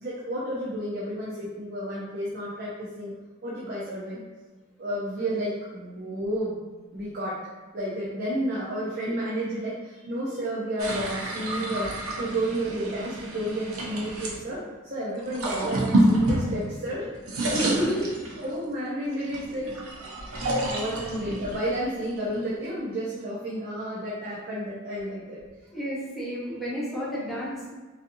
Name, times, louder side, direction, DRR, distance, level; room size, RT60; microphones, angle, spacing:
voice 1, 0.0-3.1 3.4-4.2 4.8-6.6 6.9-7.4 7.7-17.1 18.4-19.7 20.6-25.4, right 1 dB, 45° right, -7 dB, 0.6 m, -31 dB
sound 1, 10.8-14.4 15.2-16.9 17.1-18.6 19.2-22.6, right 1 dB, 85° right, 0.7 m, -28 dB
voice 2, 17.3-18.2 25.7-27.7, equal, ahead, -8 dB, 0.9 m, -31 dB
4.0 x 2.6 x 2.6 m, 1.3 s
head